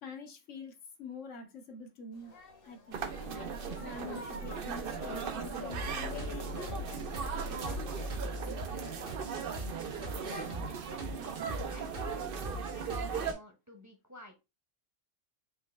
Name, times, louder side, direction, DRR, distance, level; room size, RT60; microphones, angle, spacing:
voice 1, 0.0-2.3 2.6-3.1 3.7-6.4, left 3 dB, 75° left, 4 dB, 1.3 m, -46 dB
sound 1, 2.1-10.6, left 3 dB, 50° left, 1.1 m, -48 dB
sound 2, 2.9-13.3, right 5 dB, 55° right, 0.7 m, -38 dB
sound 3, 5.7-13.4, equal, 90° right, 1.4 m, -42 dB
voice 2, 10.2-11.3 11.7-14.3, left 2 dB, 15° right, 4 dB, 0.8 m, -51 dB
4.5 x 3.2 x 3.2 m, 0.25 s
omnidirectional pair, 1.3 m